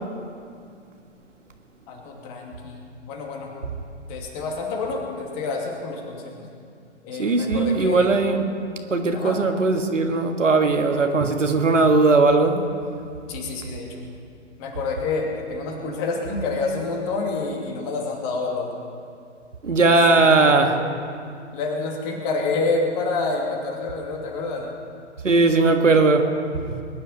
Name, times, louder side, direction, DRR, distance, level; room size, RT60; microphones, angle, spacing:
voice 1, 1.9-3.5 4.1-6.5 7.0-8.1 9.1-9.4 13.3-14.0 14.6-18.7 19.8-20.0 20.2-20.9 21.5-24.7, left 3 dB, 35° left, 1 dB, 2.6 m, -28 dB
voice 2, 7.2-8.4 8.9-12.6 19.6-20.8 25.2-26.3 26.7-26.8, right 3 dB, 85° right, 5 dB, 1.7 m, -18 dB
21.5 x 11.0 x 5.6 m, 2.4 s
hypercardioid pair, 130°, 36 cm